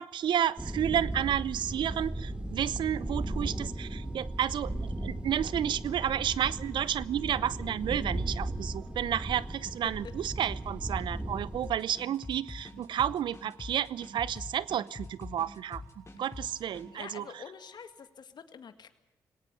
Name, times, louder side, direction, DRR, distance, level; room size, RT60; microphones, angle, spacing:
voice 1, 0.0-17.2, right 10 dB, 70° right, 0.8 m, -31 dB
sound 1, 0.6-11.7, right 1 dB, 10° right, 2.9 m, -36 dB
sound 2, 3.1-17.9, right 8 dB, 90° right, 7.7 m, -61 dB
sound 3, 11.6-16.9, left 2 dB, 35° left, 6.4 m, -44 dB
voice 2, 16.9-18.9, left 7 dB, 60° left, 2.0 m, -47 dB
19.0 x 18.0 x 9.2 m
supercardioid pair, 55°, 8 cm